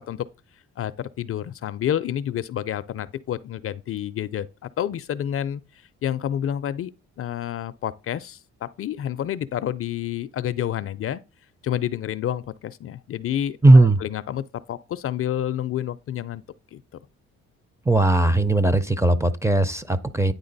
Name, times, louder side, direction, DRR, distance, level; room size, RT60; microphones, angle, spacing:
voice 1, 0.8-5.6 6.0-6.9 7.2-11.2 11.6-16.4 16.7-16.8, left 10 dB, 50° left, 0.4 m, -29 dB
voice 2, 13.6-14.0 17.9-20.3, right 2 dB, 10° right, 0.5 m, -17 dB
9.5 x 3.9 x 3.9 m
cardioid pair, 90°, 30 cm